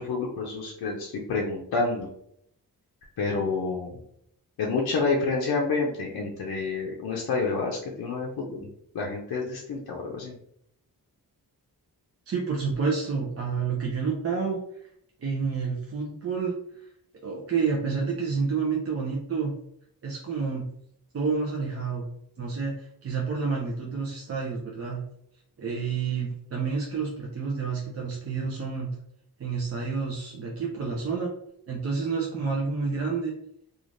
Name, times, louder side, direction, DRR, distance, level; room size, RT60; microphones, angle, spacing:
voice 1, 0.0-2.1 3.2-4.0 4.6-8.7 8.9-10.3, left 4 dB, 65° left, -2 dB, 0.5 m, -28 dB
voice 2, 12.3-14.9 15.2-16.9 17.2-19.5 20.0-20.7 21.1-22.1 22.4-25.0 25.6-29.0 29.4-31.3 31.7-33.3, right 5 dB, 40° right, -2 dB, 0.5 m, -29 dB
3.1 x 2.4 x 2.5 m, 0.71 s
wide cardioid pair, 170°, 38 cm